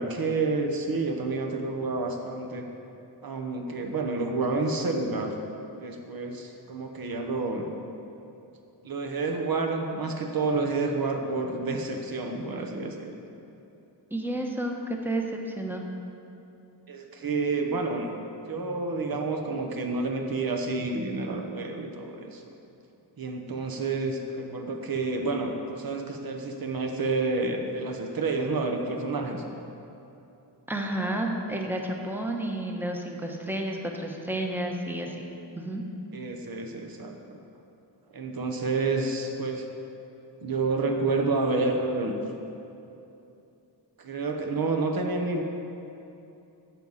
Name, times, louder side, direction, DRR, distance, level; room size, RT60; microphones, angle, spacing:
voice 1, 0.0-2.7 3.2-5.3 5.7-7.7 8.8-13.1 16.9-18.1 18.5-22.4 23.2-29.4 36.1-37.4 38.1-39.6 40.4-42.1 44.0-45.4, right 3 dB, 50° right, 3 dB, 1.1 m, -29 dB
voice 2, 14.1-15.8 30.7-35.2 35.5-35.8, right 1 dB, 5° right, 1 dB, 1.0 m, -31 dB
13.5 x 7.3 x 4.1 m, 2.8 s
wide cardioid pair, 115°, 44 cm